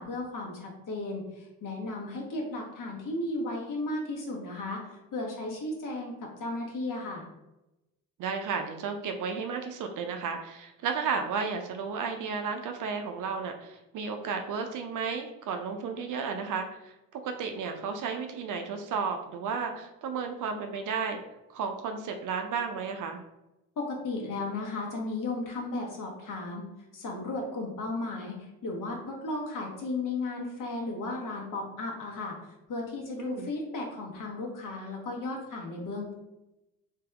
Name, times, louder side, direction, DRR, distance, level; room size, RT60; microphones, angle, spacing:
voice 1, 0.0-7.3 23.8-26.7 26.9-32.4 32.7-36.1, left 2 dB, 45° left, 0 dB, 1.3 m, -35 dB
voice 2, 8.2-21.2 21.5-23.2 33.2-33.5, right 5 dB, 45° right, 5 dB, 0.6 m, -33 dB
3.3 x 2.8 x 3.4 m, 0.95 s
hypercardioid pair, 50°, 44 cm